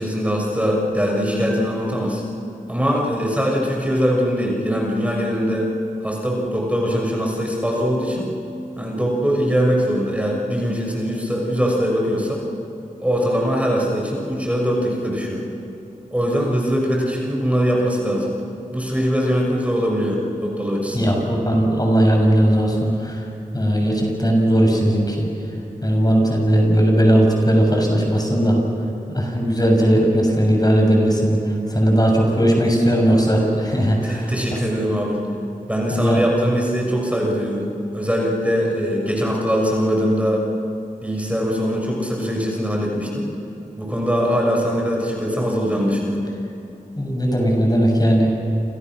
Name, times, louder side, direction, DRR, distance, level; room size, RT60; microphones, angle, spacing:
voice 1, 0.0-2.2 2.7-5.7 6.0-8.3 8.8-12.4 13.0-15.5 16.1-18.4 18.7-21.2 34.0-35.2 35.7-40.5 41.0-43.3 43.8-46.2, equal, 10° right, -1 dB, 6.2 m, -22 dB
voice 2, 20.9-23.2 23.5-25.3 25.8-28.6 29.1-31.4 31.7-34.3 35.9-36.2 47.0-48.3, equal, 25° left, 1 dB, 7.5 m, -17 dB
29.0 x 29.0 x 6.4 m, 2.7 s
cardioid pair, 45°, 15 cm